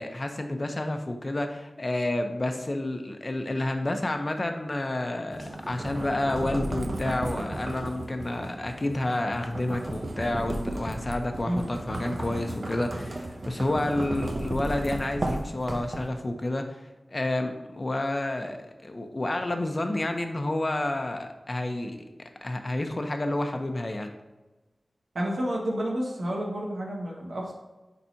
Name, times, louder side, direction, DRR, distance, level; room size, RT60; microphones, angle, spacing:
voice 1, 0.0-16.6 17.1-18.6 18.8-22.0 22.4-24.1, left 1 dB, 40° left, 5 dB, 0.9 m, -30 dB
sound 1, 5.3-16.3, right 1 dB, 50° right, 0.7 m, -34 dB
voice 2, 25.2-27.5, equal, 80° right, -2 dB, 1.7 m, -30 dB
10.0 x 4.1 x 2.9 m, 1.1 s
wide cardioid pair, 60°, 0 cm